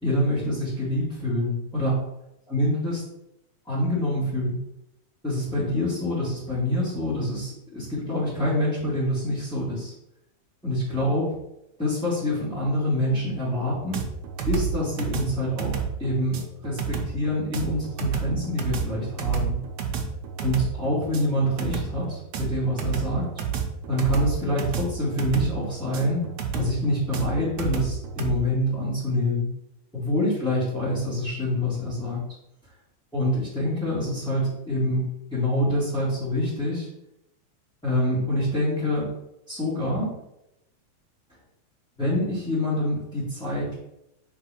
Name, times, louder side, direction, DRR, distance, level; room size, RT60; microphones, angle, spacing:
voice 1, 0.0-2.0 2.5-3.0 3.6-4.6 5.2-9.9 10.6-11.4 11.8-14.0 14.5-19.6 20.4-23.3 23.9-26.3 26.5-29.5 29.9-32.2 33.1-35.0 35.3-36.9 37.8-39.1 39.5-40.1 42.0-43.7, left 1 dB, ahead, -12 dB, 2.3 m, -26 dB
sound 1, 13.9-28.4, right 7 dB, 70° right, 2.1 m, -30 dB
5.3 x 4.5 x 5.9 m, 0.84 s
omnidirectional pair, 3.4 m